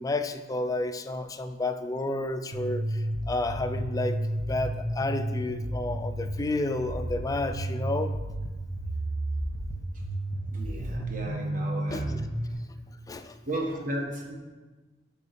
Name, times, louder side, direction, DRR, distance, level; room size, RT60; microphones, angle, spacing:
voice 1, 0.0-4.2 4.5-8.1 11.9-12.2 13.1-13.4, left 2 dB, 20° left, 9 dB, 0.4 m, -31 dB
sound 1, 2.5-12.5, right 1 dB, 80° right, 0.9 m, -32 dB
voice 2, 10.5-12.2 13.5-14.4, right 1 dB, 50° right, 0 dB, 1.3 m, -34 dB
6.8 x 5.3 x 5.2 m, 1.2 s
head